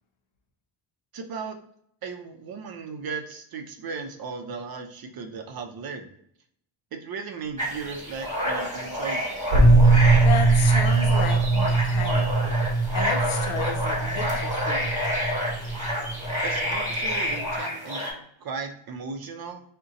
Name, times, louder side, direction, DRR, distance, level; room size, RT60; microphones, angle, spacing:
voice 1, 1.1-1.6 2.0-6.1 6.9-9.6 16.4-19.6, right 5 dB, 50° right, 5 dB, 0.5 m, -36 dB
sound 1, 7.6-18.1, equal, 15° right, 1.1 m, -29 dB
sound 2, 9.5-17.6, right 3 dB, 80° right, 0.9 m, -21 dB
voice 2, 10.2-12.6 12.9-14.9, left 6 dB, 75° left, 6 dB, 0.6 m, -33 dB
2.6 x 2.2 x 3.7 m, 0.69 s
cardioid pair, 110°, 48 cm